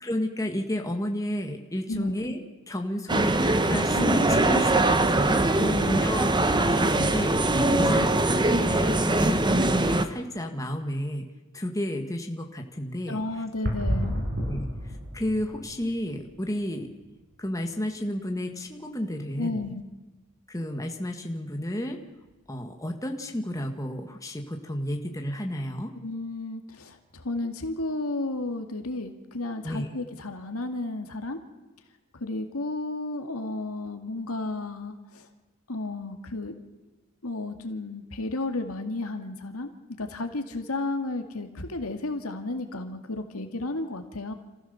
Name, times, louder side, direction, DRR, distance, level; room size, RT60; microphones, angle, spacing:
voice 1, 0.0-2.4 2.7-5.5 5.9-6.3 6.6-11.3 11.5-13.2 14.4-14.6 15.1-16.9 17.4-19.7 20.5-22.0 22.5-25.9 29.6-29.9, left 1 dB, 15° left, 3 dB, 1.8 m, -32 dB
sound 1, 3.1-10.0, right 2 dB, 20° right, 1.1 m, -22 dB
voice 2, 3.7-4.2 4.5-4.6 5.6-6.1 7.6-8.1 13.1-14.2 19.4-19.8 26.0-31.4 32.1-35.3 35.7-36.5 37.2-39.7 40.0-44.3, left 2 dB, 80° left, 6 dB, 2.1 m, -33 dB
sound 2, 13.6-16.7 16.9-17.1 17.6-17.7 22.3-22.4, equal, 50° right, 5.6 m, -31 dB
27.0 x 15.0 x 7.0 m, 1.1 s
head